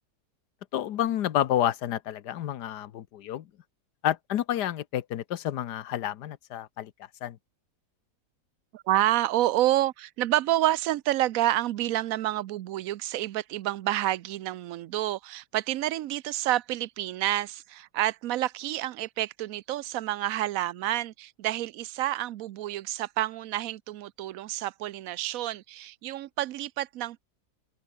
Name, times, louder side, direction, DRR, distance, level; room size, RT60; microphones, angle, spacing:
voice 1, 0.7-3.5 4.0-6.9 7.2-7.4, left 11 dB, 80° left, 1.5 m, -29 dB
voice 2, 8.7-27.2, right 14 dB, 65° right, 0.9 m, -29 dB
open air
omnidirectional pair, 1.7 m